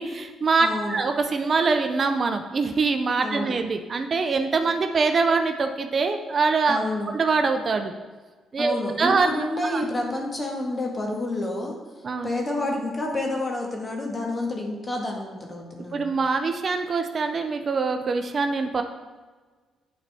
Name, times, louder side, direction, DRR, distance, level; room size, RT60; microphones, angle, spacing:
voice 1, 0.0-6.8 7.1-7.9 8.5-9.3 9.6-9.8 12.0-12.3 15.9-18.8, right 4 dB, 45° right, 7 dB, 0.5 m, -24 dB
voice 2, 0.6-1.0 3.2-3.6 6.7-7.1 8.6-16.1, left 1 dB, 30° left, 0 dB, 1.6 m, -29 dB
10.0 x 4.0 x 3.4 m, 1.4 s
cardioid pair, 85°, 0 cm